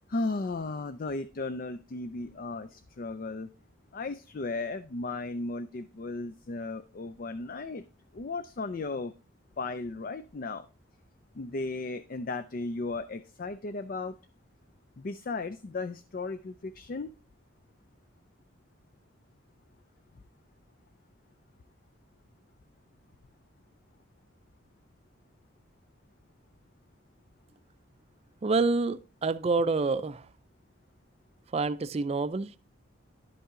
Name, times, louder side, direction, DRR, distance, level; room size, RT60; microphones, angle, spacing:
voice 1, 0.1-3.5 3.9-7.9 8.1-9.1 9.6-10.7 11.3-14.2 15.0-17.1, left 3 dB, 45° left, 0.4 m, -35 dB
voice 2, 28.4-30.3 31.5-32.5, right 3 dB, 30° right, 0.3 m, -27 dB
11.5 x 5.5 x 3.7 m
head